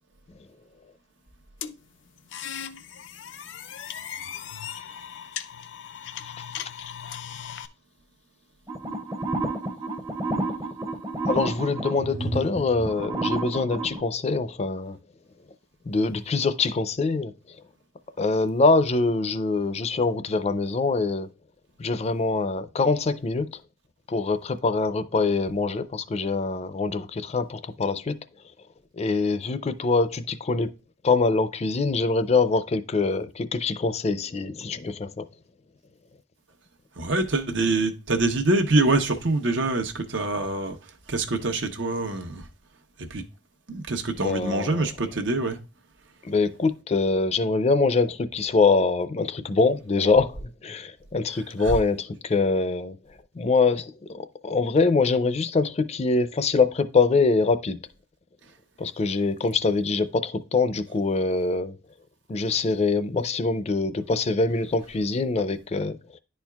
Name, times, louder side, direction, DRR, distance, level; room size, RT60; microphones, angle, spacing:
sound 1, 1.6-7.7, left 9 dB, 90° left, 0.5 m, -38 dB
sound 2, 8.7-14.0, right 2 dB, 20° right, 0.5 m, -30 dB
voice 1, 11.3-15.0 15.9-17.3 18.2-21.3 21.8-23.6 24.1-28.2 28.9-30.7 31.0-35.3 44.2-44.9 46.2-53.0 53.4-57.8 58.8-61.8 62.3-66.0, left 3 dB, 35° left, 0.4 m, -24 dB
voice 2, 37.0-40.8 41.1-42.4 43.0-43.2 43.7-45.6 51.6-51.7, right 2 dB, 90° right, 1.0 m, -25 dB
10.5 x 4.4 x 2.3 m
head